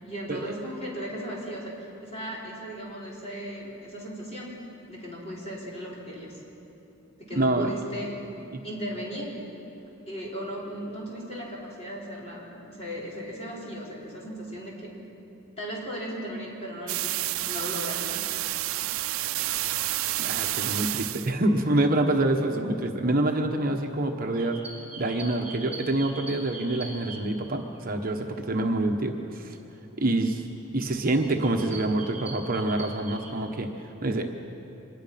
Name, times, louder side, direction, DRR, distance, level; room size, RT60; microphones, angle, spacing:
voice 1, 0.0-4.6 4.9-6.4 7.2-8.1 8.6-9.4 10.1-14.9 15.6-18.2, equal, 30° left, -5 dB, 4.9 m, -36 dB
voice 2, 7.3-7.7 8.5-8.6 19.2-19.5 20.2-24.6 25.0-29.6 30.0-30.5 30.7-33.7 34.0-34.3, right 2 dB, 45° right, 3 dB, 1.2 m, -26 dB
sound 1, 16.9-21.3, right 15 dB, 80° right, 0.5 m, -29 dB
sound 2, 24.4-28.3 28.8-29.0 30.0-30.1 30.6-30.8 31.1-33.3, right 3 dB, 10° right, 5.3 m, -42 dB
25.0 x 20.0 x 5.8 m, 2.9 s
head